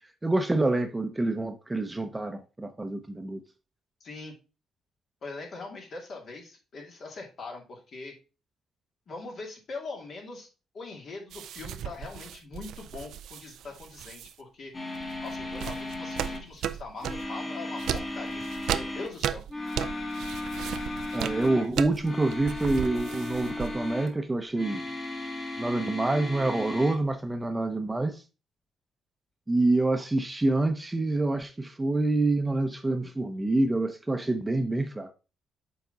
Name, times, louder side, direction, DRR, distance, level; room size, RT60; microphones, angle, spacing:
voice 1, 0.2-3.4 21.1-24.8 25.6-28.2 29.5-35.1, right 2 dB, 15° right, 0.8 m, -27 dB
voice 2, 4.0-4.4 5.2-8.1 9.1-10.5 10.7-14.9 15.2-18.4 18.7-19.4, left 3 dB, 55° left, 2.2 m, -42 dB
sound 1, 11.3-14.3 15.0-17.3 17.8-24.0, right 10 dB, 80° right, 0.4 m, -36 dB
sound 2, 14.7-16.5 17.0-19.1 19.5-21.7 22.0-24.1 24.5-27.0, left 2 dB, 30° left, 1.8 m, -36 dB
7.0 x 4.1 x 3.9 m
cardioid pair, 90°, 0 cm